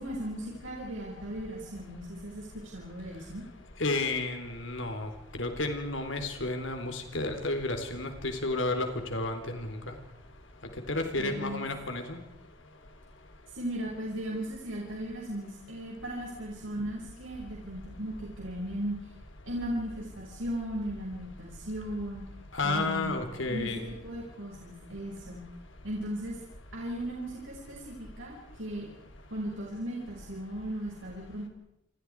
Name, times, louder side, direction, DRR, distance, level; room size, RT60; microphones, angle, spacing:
voice 1, 0.0-2.5 2.7-3.4 11.2-11.7 13.5-19.0 19.4-22.3 22.6-25.4 25.8-26.4 26.7-28.9 29.3-31.5, right 1 dB, 90° right, -2 dB, 6.1 m, -37 dB
voice 2, 3.8-10.0 10.9-12.2 22.5-23.8, left 2 dB, 80° left, 6 dB, 3.8 m, -32 dB
28.5 x 27.5 x 4.9 m, 0.79 s
head